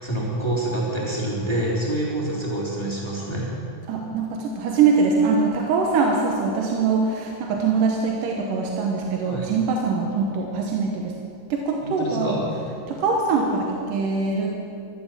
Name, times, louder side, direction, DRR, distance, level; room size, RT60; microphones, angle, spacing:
voice 1, 0.0-3.5 9.2-9.5 11.8-12.5, right 1 dB, 10° left, -5 dB, 2.9 m, -27 dB
voice 2, 3.9-11.1 11.5-12.4 12.9-14.6, right 4 dB, 90° right, 1 dB, 2.7 m, -23 dB
14.0 x 11.5 x 7.4 m, 2.6 s
omnidirectional pair, 3.7 m